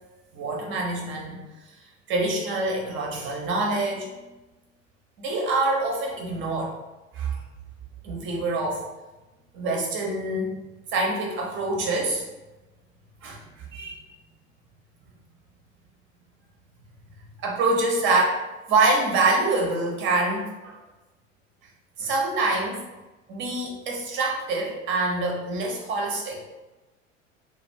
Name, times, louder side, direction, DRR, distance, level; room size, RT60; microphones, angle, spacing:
voice 1, 0.3-1.4 2.1-4.1 5.2-6.7 7.1-7.3 8.0-8.8 9.5-10.5 10.9-12.2 13.2-14.0 17.4-20.8 22.0-22.8 23.3-26.4, right 2 dB, 30° right, -1 dB, 0.8 m, -25 dB
2.4 x 2.4 x 3.2 m, 1.1 s
figure-of-eight pair, 80°, 38 cm